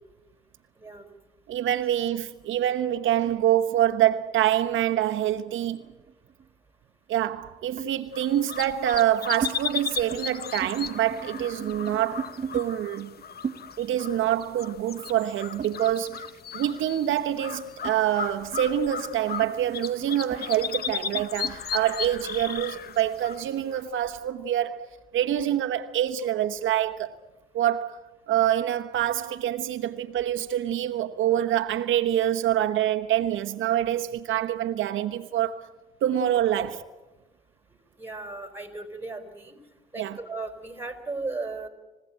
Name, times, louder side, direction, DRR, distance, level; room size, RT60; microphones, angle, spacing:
voice 1, 0.8-1.1 38.0-39.6 39.9-41.7, right 3 dB, 10° right, 4.4 m, -36 dB
voice 2, 1.5-5.8 7.1-12.3 12.5-13.1 13.8-24.9 25.1-27.1 27.5-35.6 36.0-36.7 40.0-40.2, right 11 dB, 80° right, 1.1 m, -26 dB
sound 1, 5.3-6.5 7.8-8.0 8.8-9.6 9.9-10.3 10.5-12.7 13.4-16.3 16.6-21.6, right 6 dB, 40° right, 1.3 m, -38 dB
sound 2, 8.1-24.2, left 7 dB, 50° left, 1.0 m, -36 dB
26.5 x 16.0 x 9.1 m
cardioid pair, 90°, 20 cm